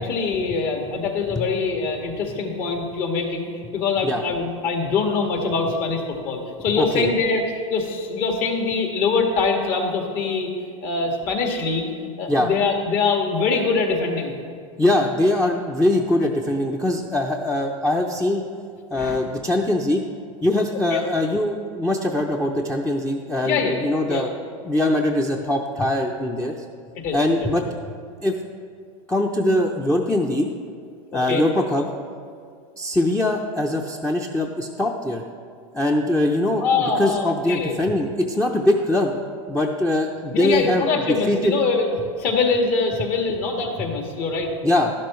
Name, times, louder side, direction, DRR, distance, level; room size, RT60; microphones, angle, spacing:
voice 1, 0.0-7.4 7.7-10.5 10.8-11.9 12.2-14.3 18.9-19.2 20.9-21.0 23.4-23.8 24.1-24.2 27.0-27.5 31.3-31.4 36.6-37.8 40.3-44.5, left 4 dB, 55° left, 2 dB, 1.9 m, -23 dB
voice 2, 6.8-7.1 12.3-12.5 14.8-18.5 18.9-20.0 20.4-24.3 24.6-26.5 27.1-27.7 28.2-28.4 29.1-30.5 31.1-31.9 32.8-35.2 35.7-39.2 39.5-41.5 44.6-44.9, left 1 dB, 5° left, 1 dB, 0.6 m, -22 dB
12.0 x 11.5 x 3.2 m, 2.2 s
supercardioid pair, 115°, 18 cm